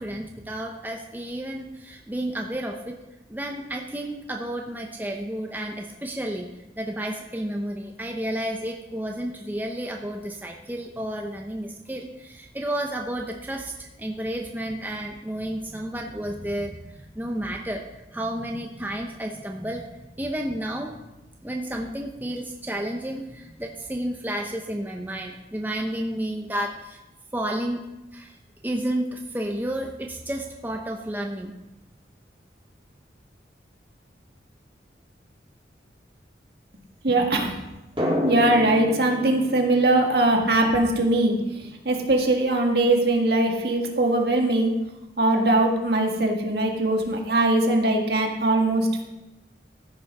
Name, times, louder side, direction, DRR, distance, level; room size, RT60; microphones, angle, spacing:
voice 1, 0.0-3.0 3.3-6.5 6.8-17.8 18.1-19.9 20.2-21.0 21.4-27.0 27.3-27.8 28.1-28.4 28.6-31.5, right 1 dB, 10° right, 1 dB, 0.7 m, -31 dB
voice 2, 37.0-37.5 38.2-41.4 41.9-44.7 45.2-49.0, right 2 dB, 60° right, 2 dB, 1.8 m, -21 dB
Drum, 38.0-41.3, left 1 dB, 30° right, 3.5 m, -30 dB
14.0 x 6.3 x 5.4 m, 0.98 s
head